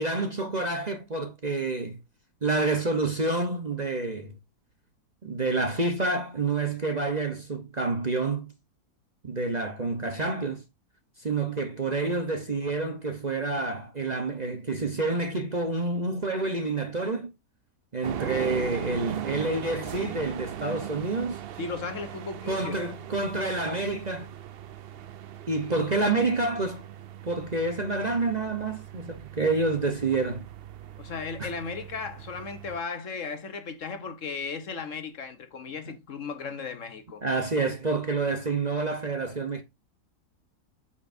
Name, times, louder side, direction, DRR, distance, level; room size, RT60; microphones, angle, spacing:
voice 1, 0.0-2.0 2.4-4.3 5.2-8.5 9.3-10.6 11.2-17.3 17.9-21.4 22.5-24.3 25.5-26.8 27.3-30.4 31.4-31.5 37.2-39.6, right 3 dB, 30° right, 1.0 m, -28 dB
sound 1, 18.0-32.8, right 10 dB, 65° right, 0.5 m, -39 dB
voice 2, 21.6-22.8 31.0-37.2, left 5 dB, 55° left, 1.3 m, -36 dB
8.5 x 7.1 x 2.6 m
omnidirectional pair, 1.7 m